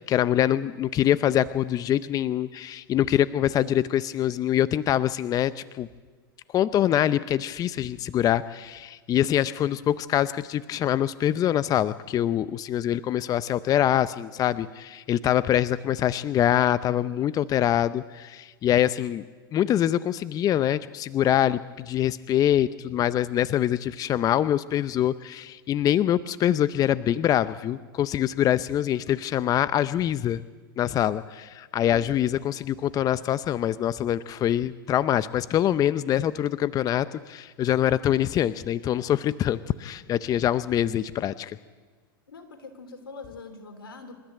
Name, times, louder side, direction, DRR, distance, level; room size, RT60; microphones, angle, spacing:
voice 1, 0.0-5.9 6.5-19.2 19.5-30.4 30.8-41.6, left 11 dB, 30° left, 15 dB, 0.6 m, -24 dB
voice 2, 42.3-44.2, left 4 dB, 90° left, 7 dB, 3.4 m, -43 dB
26.5 x 13.5 x 8.9 m, 1.4 s
hypercardioid pair, 100°, 12 cm